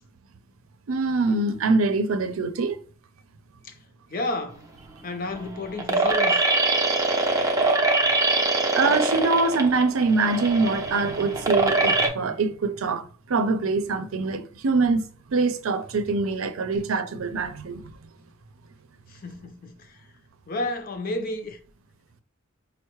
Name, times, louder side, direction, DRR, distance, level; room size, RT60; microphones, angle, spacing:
voice 1, 0.9-2.8 8.7-18.1, right 3 dB, 85° right, 0.5 m, -24 dB
voice 2, 4.1-4.6 5.0-6.4 19.1-20.0 20.5-21.6, left 2 dB, 45° left, 0.5 m, -31 dB
sound 1, 4.6-12.1, right 3 dB, 15° right, 0.5 m, -23 dB
5.4 x 2.0 x 3.0 m
head